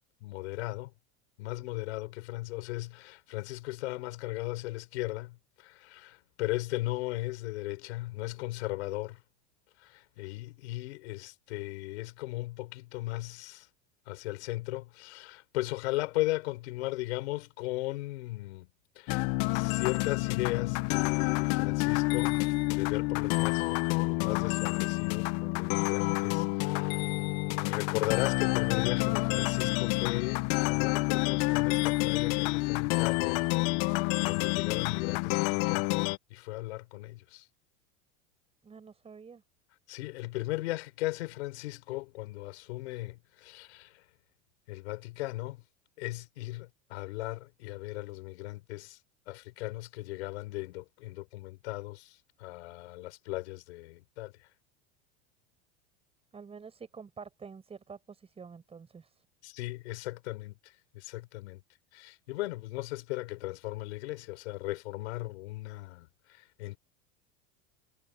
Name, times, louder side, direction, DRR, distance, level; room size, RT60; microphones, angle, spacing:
voice 1, 0.2-0.9 1.4-9.2 9.8-13.7 14.1-18.7 18.9-19.3 19.5-27.0 27.6-33.4 33.9-37.4 39.9-44.0 44.7-45.6 46.0-49.0 49.3-54.3 59.4-61.6 61.9-66.8, left 19 dB, 80° left, 5.1 m, -37 dB
sound 1, 19.1-36.2, left 24 dB, 60° left, 0.9 m, -28 dB
voice 2, 38.6-39.4 56.3-59.2, right 5 dB, 15° right, 7.9 m, -48 dB
supercardioid pair, 140°, 33 cm